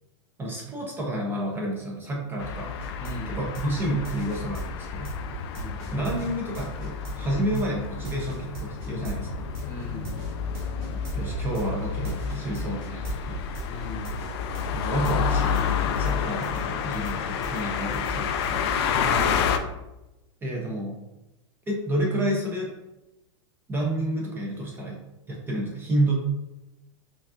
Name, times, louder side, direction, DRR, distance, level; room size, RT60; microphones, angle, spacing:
voice 1, 0.4-2.7 3.3-5.1 5.9-9.5 10.9-13.5 14.7-18.7 20.4-21.0 21.7-22.7 23.7-25.0 25.3-26.1, right 1 dB, 15° right, -2 dB, 0.5 m, -30 dB
sound 1, 2.4-19.6, left 7 dB, 55° left, 0.4 m, -29 dB
sound 2, 2.8-15.7 15.9-18.6, right 5 dB, 55° right, 1.4 m, -39 dB
voice 2, 3.0-3.4 5.5-5.9 9.6-10.1 13.7-14.1 18.9-19.5, equal, 15° left, -3 dB, 1.0 m, -37 dB
5.1 x 2.4 x 2.4 m, 0.96 s
supercardioid pair, 150°, 16 cm